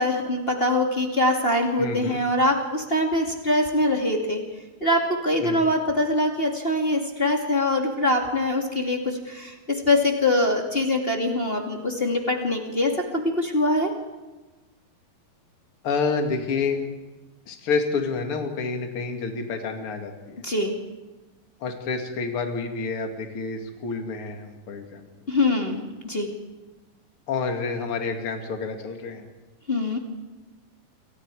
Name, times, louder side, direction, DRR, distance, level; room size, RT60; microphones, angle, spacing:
voice 1, 0.0-4.4 4.8-13.9 20.4-20.7 25.3-26.3 29.7-30.0, left 1 dB, 20° left, 1 dB, 2.1 m, -23 dB
voice 2, 1.8-2.2 5.4-5.6 15.8-16.8 17.5-20.4 21.6-25.1 27.3-29.2, left 4 dB, 40° left, 4 dB, 2.8 m, -28 dB
28.5 x 24.0 x 4.9 m, 1.2 s
omnidirectional pair, 4.3 m